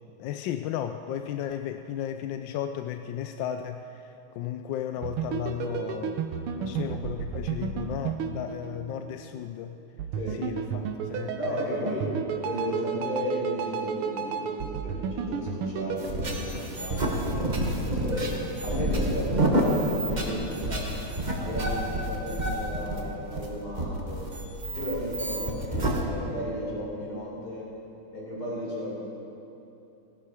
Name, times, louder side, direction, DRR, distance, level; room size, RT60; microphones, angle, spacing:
voice 1, 0.2-6.3 6.6-9.8 10.3-12.0, left 10 dB, 75° left, 7 dB, 1.1 m, -35 dB
sound 1, 5.0-9.2 10.0-16.1, right 7 dB, 85° right, 1.7 m, -32 dB
voice 2, 11.4-12.1 12.4-18.3 18.6-20.9 21.4-24.3 24.7-27.6 28.1-28.9, equal, 45° left, -6 dB, 4.7 m, -34 dB
sound 2, 16.0-26.0, right 1 dB, 25° right, 1.1 m, -28 dB
17.0 x 11.5 x 4.9 m, 2.9 s
omnidirectional pair, 2.3 m